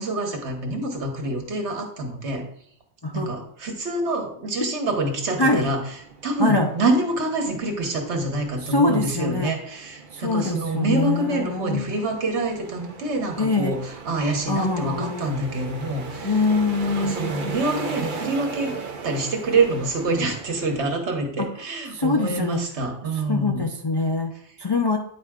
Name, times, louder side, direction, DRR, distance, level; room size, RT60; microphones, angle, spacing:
voice 1, 0.0-2.5 3.1-5.8 6.2-16.4 16.8-18.7 19.0-23.7, right 2 dB, 75° right, 3 dB, 1.5 m, -26 dB
sound 1, 5.1-20.9, right 4 dB, 50° right, 0.9 m, -38 dB
voice 2, 5.4-5.7 6.4-6.7 8.6-9.5 10.1-11.9 13.4-13.8 14.5-15.3 16.2-17.5 21.4-21.5 21.9-22.6 23.3-24.3 24.6-25.0, left 3 dB, 40° left, 2 dB, 0.4 m, -23 dB
9.7 x 4.4 x 3.6 m, 0.69 s
omnidirectional pair, 1.2 m